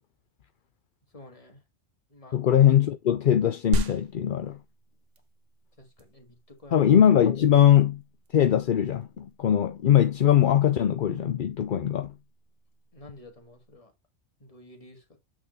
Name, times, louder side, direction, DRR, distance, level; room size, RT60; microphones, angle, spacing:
voice 1, 1.1-1.6 2.1-2.4 5.8-6.9 12.9-13.9 14.4-15.2, left 1 dB, 30° left, 1.8 m, -50 dB
voice 2, 2.3-4.6 6.7-8.0 8.3-12.1, left 10 dB, 55° left, 0.7 m, -21 dB
sound 1, 3.7-13.7, right 2 dB, 85° right, 1.3 m, -37 dB
8.6 x 3.8 x 3.9 m
omnidirectional pair, 1.2 m